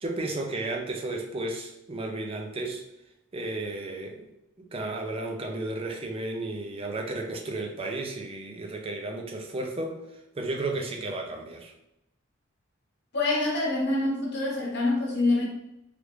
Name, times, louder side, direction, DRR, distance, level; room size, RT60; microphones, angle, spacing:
voice 1, 0.0-2.8 3.3-4.3 4.6-11.7, right 2 dB, 25° right, 2 dB, 0.4 m, -33 dB
voice 2, 13.1-15.4, left 2 dB, 55° left, -4 dB, 1.1 m, -25 dB
3.2 x 2.4 x 3.1 m, 0.85 s
head